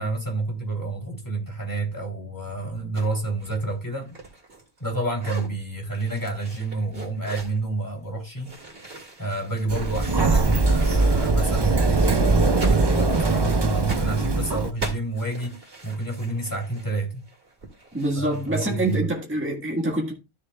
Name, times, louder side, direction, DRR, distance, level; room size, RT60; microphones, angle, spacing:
voice 1, 0.0-4.2 4.8-8.5 9.2-17.2 18.2-19.1, right 2 dB, 20° left, 3.1 m, -29 dB
sound 1, 2.9-3.1 3.4-4.9 5.1-5.5 6.0-7.6 8.4-11.7 11.9-19.0, right 3 dB, 60° right, 2.5 m, -39 dB
Sliding door, 9.7-14.7, right 3 dB, 30° right, 0.6 m, -21 dB
voice 2, 17.9-20.1, right 1 dB, 10° right, 1.6 m, -25 dB
13.0 x 6.7 x 2.3 m
omnidirectional pair, 1.1 m